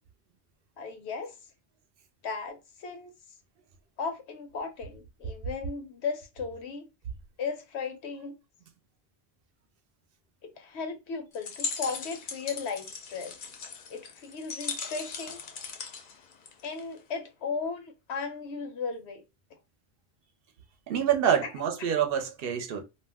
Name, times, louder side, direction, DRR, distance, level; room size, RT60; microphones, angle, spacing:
voice 1, 0.8-1.4 2.2-3.1 4.0-6.9 7.4-8.3 10.4-13.3 13.9-15.4 16.6-19.2 21.4-21.5 21.8-21.9, left 5 dB, 85° left, 1.0 m, -36 dB
sound 1, 11.3-17.0, left 5 dB, 60° left, 0.6 m, -39 dB
voice 2, 20.9-22.8, right 8 dB, 65° right, 0.7 m, -26 dB
2.4 x 2.0 x 3.4 m
omnidirectional pair, 1.1 m